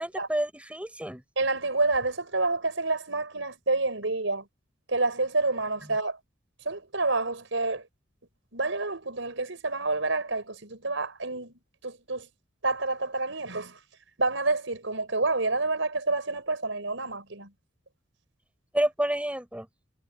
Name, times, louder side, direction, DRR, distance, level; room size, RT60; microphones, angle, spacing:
voice 1, 0.0-1.2 18.7-19.7, right 1 dB, 5° right, 6.2 m, -29 dB
voice 2, 1.4-4.4 4.9-6.2 6.6-7.8 8.5-11.5 11.8-12.3 12.6-13.8 14.2-17.5, right 3 dB, 80° right, 4.8 m, -28 dB
head